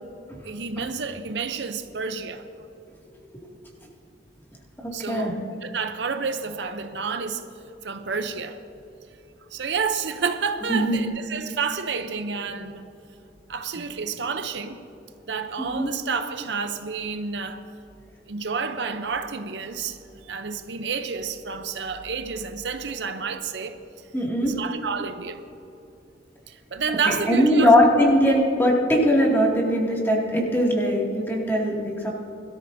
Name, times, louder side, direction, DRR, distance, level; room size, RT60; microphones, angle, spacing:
voice 1, 0.4-2.4 4.9-5.3 5.6-7.4 7.8-8.6 9.5-12.9 13.5-14.8 15.3-17.6 18.3-23.8 24.4-25.4 26.5-27.7, right 5 dB, 70° right, 0.7 m, -29 dB
voice 2, 4.8-5.3 10.7-11.1 15.6-15.9 24.1-24.5 27.1-32.1, equal, 10° left, 2.2 m, -21 dB
21.0 x 13.5 x 2.7 m
head